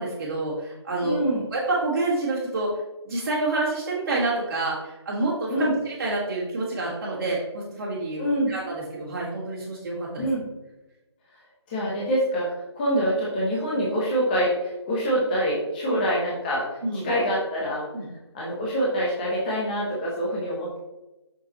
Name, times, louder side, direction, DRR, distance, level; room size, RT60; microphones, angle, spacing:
voice 1, 0.0-1.2 1.5-2.7 3.1-10.3 15.9-16.0 16.8-17.1 17.9-18.1, right 2 dB, 35° right, -10 dB, 1.7 m, -28 dB
voice 2, 1.0-1.4 5.5-5.7 8.2-8.5 10.2-10.4 11.7-12.5 12.7-16.7 16.9-17.9 18.3-20.8, equal, 20° left, -5 dB, 1.0 m, -25 dB
6.2 x 5.8 x 3.1 m, 1.0 s
figure-of-eight pair, 165°, 15 cm